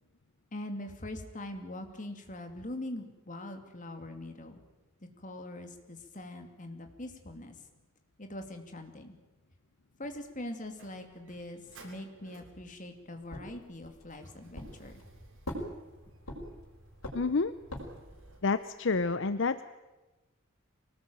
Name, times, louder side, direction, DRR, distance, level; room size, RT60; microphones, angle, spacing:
voice 1, 0.5-4.6 5.2-7.5 8.2-9.2 10.0-15.0, left 1 dB, 40° left, 6 dB, 2.8 m, -42 dB
Motor vehicle (road), 10.1-18.4, right 2 dB, 70° right, 7.5 m, -57 dB
sound 1, 13.3-14.1 14.6-15.1 15.4-16.7 17.0-18.1, left 1 dB, 90° left, 5.5 m, -41 dB
voice 2, 17.1-17.5 18.4-19.6, left 4 dB, 60° left, 13 dB, 0.7 m, -28 dB
24.0 x 19.0 x 9.0 m, 1.1 s
head